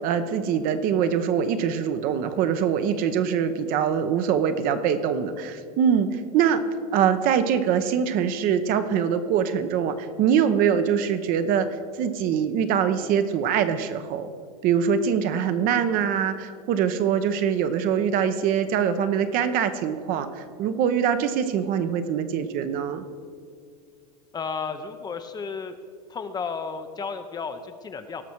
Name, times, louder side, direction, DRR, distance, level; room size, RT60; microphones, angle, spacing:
voice 1, 0.0-6.6 6.9-11.7 12.0-14.3 14.6-23.0, right 8 dB, 45° right, 10 dB, 0.8 m, -23 dB
voice 2, 24.3-25.8 26.1-28.2, left 5 dB, 20° left, 8 dB, 0.6 m, -33 dB
18.0 x 6.1 x 4.5 m, 2.1 s
hypercardioid pair, 115°, 21 cm